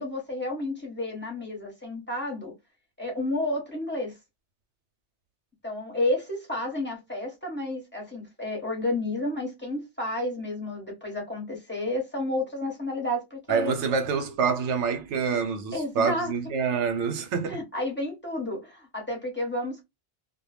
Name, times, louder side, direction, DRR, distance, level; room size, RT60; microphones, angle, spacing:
voice 1, 0.0-2.5 3.0-4.1 5.6-13.7 15.7-16.3 17.5-19.8, left 1 dB, 10° left, 1.0 m, -31 dB
voice 2, 13.5-17.6, right 6 dB, 85° right, 1.0 m, -27 dB
2.2 x 2.2 x 3.2 m
omnidirectional pair, 1.2 m